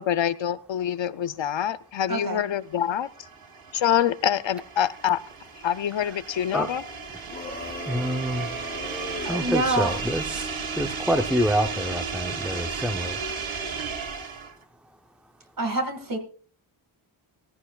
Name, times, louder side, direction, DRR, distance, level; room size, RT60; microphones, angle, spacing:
voice 1, 0.0-3.1 3.7-5.2 5.6-6.8, left 10 dB, 65° left, 14 dB, 0.6 m, -25 dB
voice 2, 2.1-2.4 9.2-9.9 15.6-16.2, right 2 dB, 40° right, 7 dB, 2.0 m, -26 dB
sound 1, 2.7-14.6, right 5 dB, 70° right, 1.6 m, -34 dB
sound 2, 7.2-9.5, left 2 dB, 20° left, 1.0 m, -38 dB
voice 3, 7.9-8.5 9.3-10.5 10.7-13.2, equal, 5° right, 5 dB, 0.6 m, -26 dB
16.5 x 14.5 x 2.3 m, 0.41 s
wide cardioid pair, 180°, 49 cm